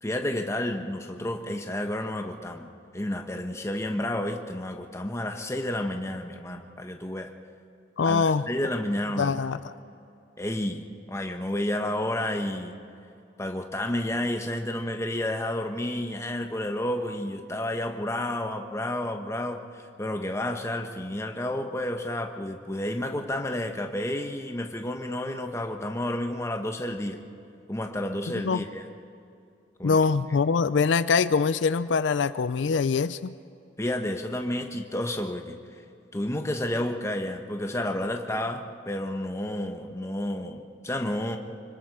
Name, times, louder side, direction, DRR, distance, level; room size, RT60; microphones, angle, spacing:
voice 1, 0.0-2.7 2.9-7.3 8.0-9.4 10.4-12.8 13.4-27.2 27.7-28.8 29.8-30.0 33.8-35.6 36.1-41.4, left 1 dB, 15° left, 4 dB, 1.2 m, -31 dB
voice 2, 8.0-8.5 9.2-9.6 28.5-28.6 29.8-33.3, left 5 dB, 75° left, 14 dB, 0.4 m, -23 dB
25.5 x 24.5 x 4.9 m, 2.6 s
head